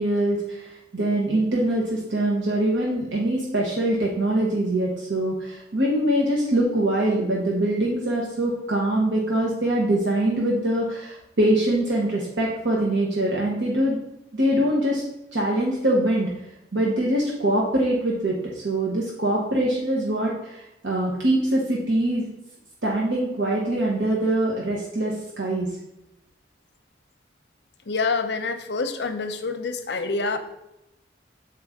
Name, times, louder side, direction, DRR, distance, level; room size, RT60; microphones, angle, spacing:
voice 1, 0.0-14.0 14.3-15.0 15.3-16.3 16.7-22.3 22.8-25.7, right 1 dB, 85° right, -3 dB, 1.0 m, -23 dB
voice 2, 27.9-30.4, left 4 dB, 70° left, 8 dB, 0.6 m, -27 dB
6.8 x 4.7 x 3.6 m, 0.87 s
head